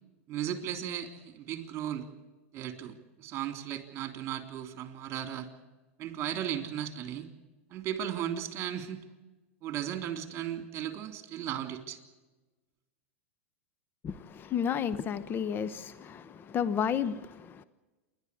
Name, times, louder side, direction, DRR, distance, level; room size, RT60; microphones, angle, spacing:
voice 1, 0.3-2.1 2.5-5.5 6.0-7.3 7.7-9.0 9.6-12.0, right 10 dB, 35° right, 3.3 m, -36 dB
voice 2, 14.0-17.6, left 8 dB, 30° left, 1.0 m, -32 dB
28.5 x 12.0 x 8.5 m
hypercardioid pair, 110°, 7 cm